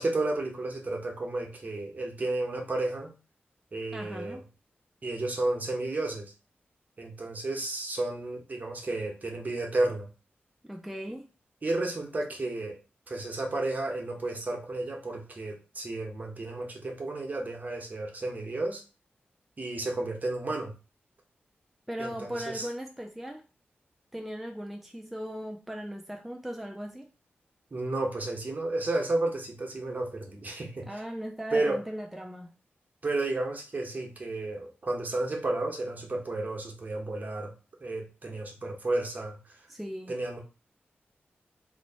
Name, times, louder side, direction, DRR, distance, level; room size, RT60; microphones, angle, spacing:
voice 1, 0.0-3.1 3.7-4.4 5.0-6.3 7.0-10.1 11.6-12.8 13.1-18.8 19.6-20.7 22.0-22.7 27.7-31.0 31.5-31.8 33.0-37.5 37.8-39.7 40.1-40.4, right 2 dB, 45° right, 1 dB, 1.0 m, -32 dB
voice 2, 3.9-4.5 10.6-11.3 21.9-23.4 24.1-27.1 30.9-32.5 39.7-40.2, equal, 5° right, 2 dB, 0.4 m, -38 dB
3.0 x 2.6 x 4.3 m, 0.33 s
wide cardioid pair, 85°, 4 cm